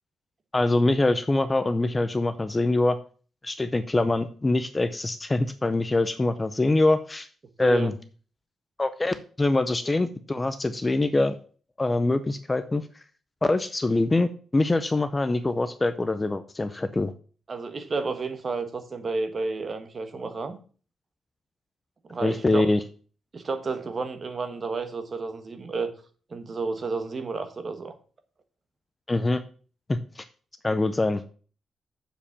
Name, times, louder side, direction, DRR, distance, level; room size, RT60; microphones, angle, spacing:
voice 1, 0.5-3.0 3.4-7.3 7.6-7.9 8.8-11.4 11.8-12.8 13.4-17.1 22.2-22.8 29.1-29.4 29.9-30.2 30.6-31.2, left 2 dB, 15° left, 11 dB, 0.5 m, -24 dB
voice 2, 7.6-7.9 17.5-20.6 22.1-22.7 23.3-25.9 26.3-27.9, right 4 dB, 30° right, 8 dB, 1.3 m, -31 dB
7.3 x 7.2 x 7.0 m, 0.40 s
wide cardioid pair, 175°, 0 cm